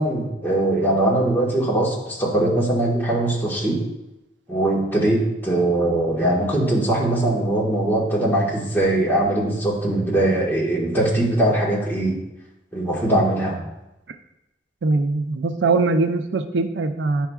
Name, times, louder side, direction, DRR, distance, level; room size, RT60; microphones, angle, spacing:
voice 1, 0.0-3.8 4.5-12.2 12.7-13.6, right 1 dB, 10° left, -4 dB, 1.5 m, -21 dB
voice 2, 14.8-17.3, right 3 dB, 85° right, 9 dB, 0.5 m, -21 dB
9.7 x 5.7 x 2.4 m, 0.94 s
head